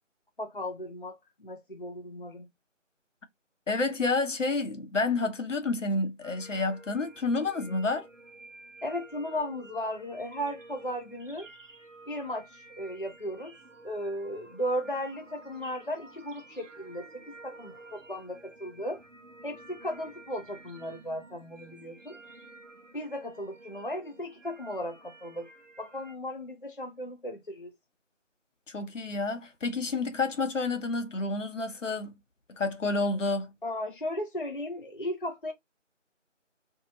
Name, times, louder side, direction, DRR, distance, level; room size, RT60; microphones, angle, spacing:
voice 1, 0.4-2.5 8.8-11.5 12.1-13.5 13.8-19.0 19.4-22.2 22.9-25.5 25.8-27.7 33.6-35.5, equal, 45° left, 0.5 m, -36 dB
voice 2, 3.7-8.1 28.7-32.2 32.6-33.5, left 3 dB, 75° left, 0.9 m, -29 dB
sound 1, 6.2-26.2, right 2 dB, 75° right, 1.0 m, -52 dB
2.7 x 2.2 x 2.8 m
figure-of-eight pair, 170°, 38 cm